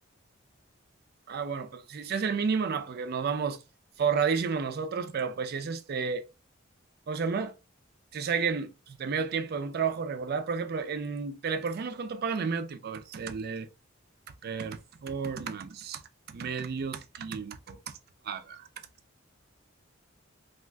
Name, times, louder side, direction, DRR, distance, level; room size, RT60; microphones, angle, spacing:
voice 1, 1.3-3.6 4.0-6.2 7.1-7.5 8.1-13.7 14.4-16.0 16.3-17.9 18.2-18.7, right 5 dB, 50° right, 0.4 m, -31 dB
3.2 x 2.4 x 2.2 m
head